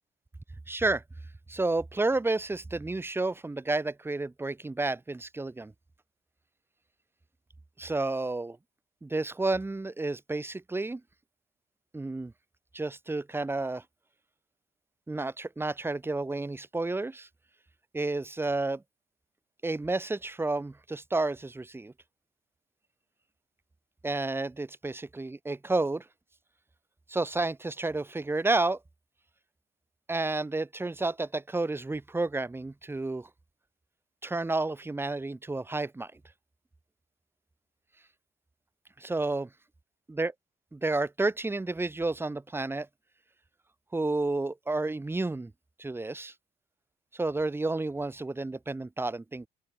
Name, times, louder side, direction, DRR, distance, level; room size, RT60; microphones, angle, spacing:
voice 1, 0.7-1.0 1.5-5.7 7.8-8.6 9.0-11.0 11.9-12.3 12.7-13.8 15.1-17.3 17.9-18.8 19.6-21.9 24.0-26.0 27.1-28.8 30.1-33.3 34.2-36.2 39.0-39.5 40.1-40.3 40.7-42.9 43.9-45.5 45.8-46.3 47.1-49.5, right 2 dB, 10° right, 0.6 m, -31 dB
open air
cardioid pair, 90°, 20 cm